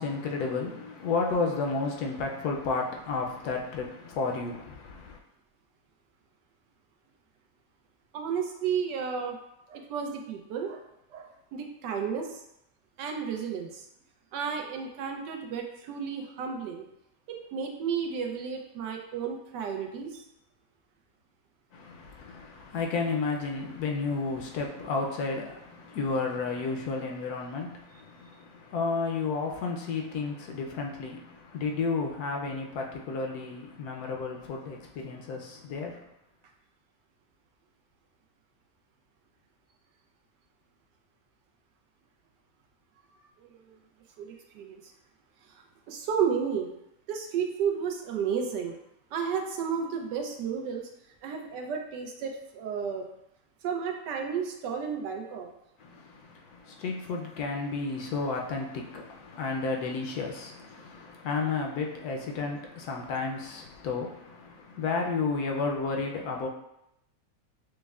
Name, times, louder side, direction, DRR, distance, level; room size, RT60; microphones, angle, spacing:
voice 1, 0.0-5.2 21.7-36.0 55.8-66.5, left 4 dB, 75° left, 1 dB, 1.0 m, -32 dB
voice 2, 8.1-9.4 9.7-10.8 11.1-12.4 13.0-13.8 14.3-16.9 17.3-20.2 43.4-43.8 44.2-44.8 45.5-46.7 47.1-48.8 49.1-50.9 51.2-53.1 53.6-55.5, right 7 dB, 85° right, 3 dB, 1.2 m, -32 dB
6.2 x 2.1 x 2.3 m, 0.81 s
omnidirectional pair, 1.8 m